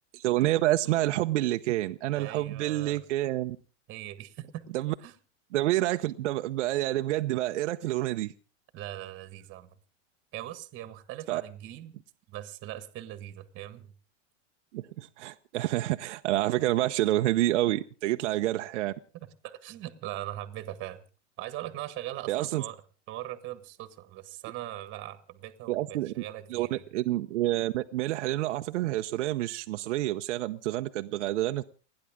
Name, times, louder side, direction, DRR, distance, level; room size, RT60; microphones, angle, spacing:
voice 1, 0.1-3.6 4.7-4.9 5.5-8.3 11.3-11.4 14.7-18.9 22.3-22.6 25.7-26.1 26.5-31.6, right 15 dB, 70° right, 0.9 m, -28 dB
voice 2, 2.1-3.0 3.9-4.6 5.0-5.1 8.7-9.7 10.3-11.9 12.3-13.9 19.4-21.0 21.4-22.8 23.1-26.8, right 14 dB, 30° right, 1.5 m, -40 dB
30.0 x 10.0 x 3.7 m
supercardioid pair, 140°, 37 cm